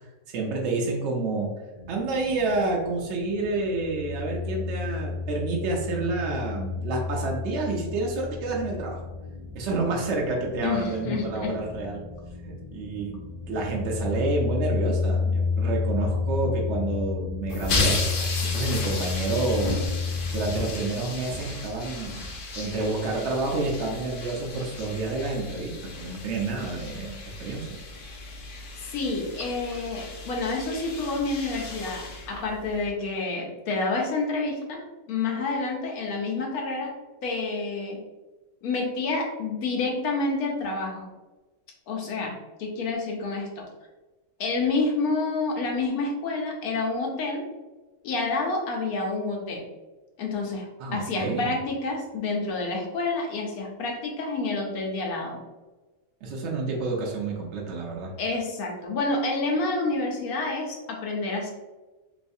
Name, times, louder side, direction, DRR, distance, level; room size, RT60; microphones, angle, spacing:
voice 1, 0.3-1.5 1.9-9.0 9.5-12.0 12.4-13.2 13.5-18.0 18.4-19.7 20.3-22.3 22.5-27.8 50.8-51.5 56.2-58.1, right 3 dB, 65° right, -1 dB, 0.8 m, -29 dB
sound 1, 1.8-20.7, left 4 dB, 40° left, 0.8 m, -32 dB
voice 2, 10.6-11.5 28.8-36.9 37.2-38.0 38.6-41.1 41.9-42.3 42.6-43.6 44.4-47.4 48.0-49.6 50.2-50.7 50.9-55.4 58.2-61.5, left 3 dB, 85° left, 0 dB, 1.2 m, -28 dB
sound 2, 17.5-32.9, left 3 dB, 65° left, 0.5 m, -34 dB
3.2 x 3.1 x 2.6 m, 1.2 s
omnidirectional pair, 1.5 m